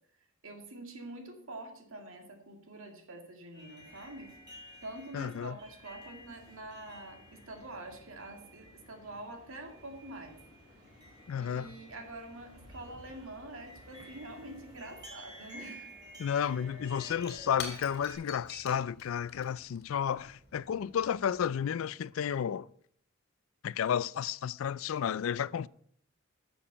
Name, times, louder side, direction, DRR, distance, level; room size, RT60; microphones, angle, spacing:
voice 1, 0.4-4.3 4.8-10.4 11.4-15.9 16.4-16.6, right 2 dB, 65° right, 2.2 m, -46 dB
sound 1, 3.5-18.1, equal, 20° right, 4.5 m, -53 dB
voice 2, 5.1-5.6 11.3-11.7 16.2-22.7 23.6-25.7, left 8 dB, 65° left, 0.3 m, -32 dB
Shatter / Crushing, 16.9-21.4, left 5 dB, 45° left, 2.3 m, -47 dB
12.0 x 7.1 x 5.7 m
head